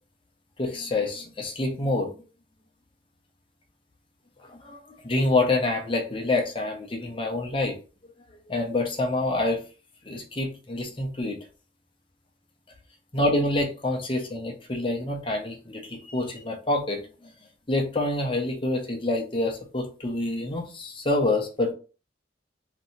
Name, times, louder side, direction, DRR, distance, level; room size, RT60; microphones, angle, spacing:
voice 1, 0.6-2.1 4.5-7.8 8.5-9.6 10.0-11.4 13.1-17.3 17.7-21.7, left 2 dB, 30° left, 2 dB, 0.7 m, -27 dB
3.0 x 2.7 x 3.0 m, 0.34 s
head